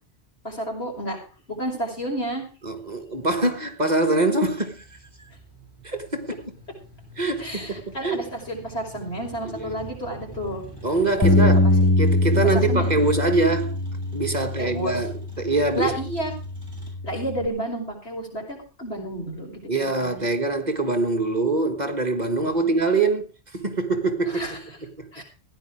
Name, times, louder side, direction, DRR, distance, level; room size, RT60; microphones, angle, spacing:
voice 1, 0.4-1.2 1.5-2.4 7.4-10.6 11.2-11.7 12.7-13.1 14.6-15.0 15.7-16.3 17.0-20.3 22.4-22.8 24.3-24.6 25.1-25.2, equal, 70° left, 5.9 m, -31 dB
voice 2, 2.6-4.8 5.8-6.5 7.2-8.3 9.5-9.8 10.8-11.6 12.0-13.8 14.1-15.9 19.7-23.3 23.5-25.2, right 2 dB, 40° right, 1.7 m, -24 dB
Motor vehicle (road), 2.8-16.9, right 4 dB, 20° right, 6.0 m, -45 dB
Bass guitar, 11.2-17.5, left 2 dB, 15° left, 1.4 m, -23 dB
16.0 x 10.0 x 4.9 m
omnidirectional pair, 1.1 m